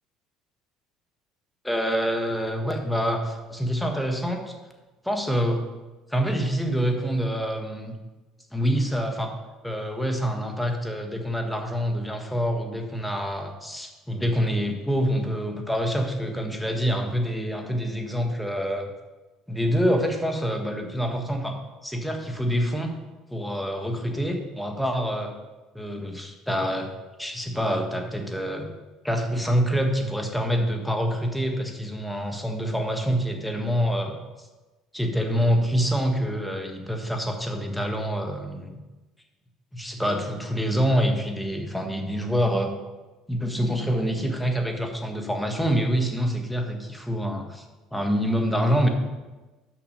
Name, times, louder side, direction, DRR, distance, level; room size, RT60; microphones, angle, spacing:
voice 1, 1.6-4.5 5.0-5.6 6.1-7.9 8.5-9.3 9.6-18.9 19.5-21.6 21.8-22.9 23.3-25.3 25.7-26.9 27.2-28.7 29.0-34.5 34.9-38.8 39.7-42.7 43.3-47.6 47.9-48.9, equal, 5° left, 3 dB, 1.4 m, -26 dB
6.1 x 6.0 x 6.6 m, 1.2 s
supercardioid pair, 85°, 0 cm